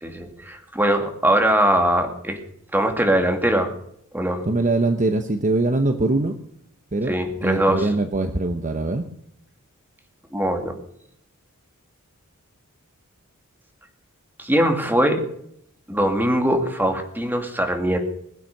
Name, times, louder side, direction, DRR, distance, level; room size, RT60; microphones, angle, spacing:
voice 1, 0.0-2.4 2.7-3.7 4.1-4.4 7.1-7.9 10.3-10.7 14.4-15.2 15.9-18.0, right 1 dB, 10° right, 4 dB, 2.4 m, -21 dB
voice 2, 4.4-6.4 6.9-9.0, right 2 dB, 35° right, 7 dB, 1.0 m, -22 dB
21.0 x 9.0 x 6.7 m, 0.69 s
head